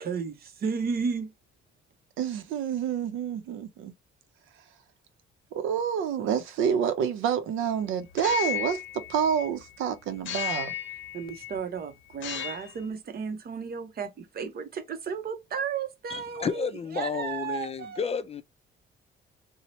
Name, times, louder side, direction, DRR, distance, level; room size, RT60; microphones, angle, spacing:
voice 1, 0.0-1.3 11.1-16.7 16.9-18.0, right 6 dB, 50° right, 0.7 m, -33 dB
voice 2, 2.2-3.9 5.5-8.8 9.1-10.7, right 8 dB, 90° right, 0.6 m, -28 dB
sound 1, 8.1-9.7 10.3-11.6 12.1-12.9, left 11 dB, 75° left, 0.6 m, -34 dB
voice 3, 16.1-18.4, left 5 dB, 30° left, 0.4 m, -31 dB
2.8 x 2.0 x 2.9 m
cardioid pair, 90°, 20 cm